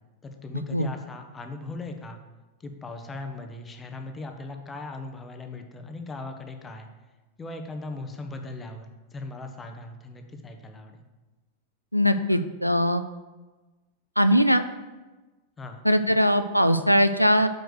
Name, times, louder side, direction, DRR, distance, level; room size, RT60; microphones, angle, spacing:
voice 1, 0.2-2.2 2.6-6.9 7.4-11.0 15.6-15.8, left 2 dB, 15° left, 5 dB, 0.9 m, -38 dB
voice 2, 11.9-13.1 14.2-14.6 15.8-17.5, equal, 90° left, 10 dB, 0.4 m, -20 dB
6.5 x 4.6 x 6.4 m, 1.2 s
figure-of-eight pair, 90°, 0 cm